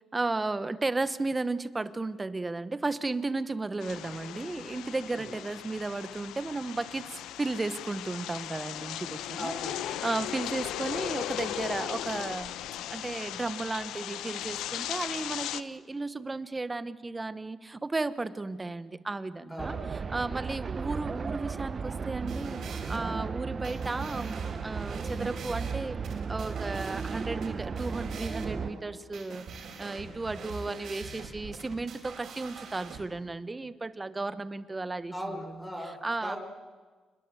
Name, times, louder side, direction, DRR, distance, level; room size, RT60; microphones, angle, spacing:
voice 1, 0.1-9.5 10.0-19.8 20.1-22.6 22.9-26.0 26.3-29.5 29.8-35.1 35.4-35.7 36.0-36.4, right 3 dB, 20° right, 14 dB, 1.2 m, -34 dB
sound 1, 3.8-15.6, left 12 dB, 85° left, 0.8 m, -37 dB
voice 2, 9.4-9.9 19.5-19.8 35.1-36.4, equal, 10° left, 2 dB, 4.7 m, -38 dB
sound 2, 19.6-28.7, right 5 dB, 40° right, 1.0 m, -35 dB
sound 3, 22.0-33.0, right 4 dB, 65° right, 5.2 m, -43 dB
27.5 x 21.0 x 8.0 m, 1.4 s
cardioid pair, 90°, 0 cm